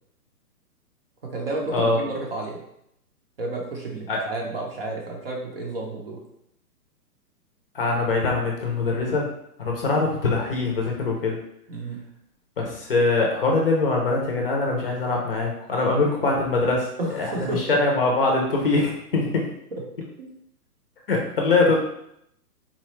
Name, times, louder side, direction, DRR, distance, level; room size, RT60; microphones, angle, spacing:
voice 1, 1.2-2.6 3.4-6.2 11.7-12.0 17.0-17.8 20.2-20.3, right 2 dB, 40° right, -1 dB, 0.6 m, -31 dB
voice 2, 7.7-9.2 9.6-11.4 12.6-19.4 21.1-21.8, left 3 dB, 35° left, 0 dB, 0.6 m, -23 dB
4.0 x 2.3 x 3.0 m, 0.75 s
hypercardioid pair, 155°, 47 cm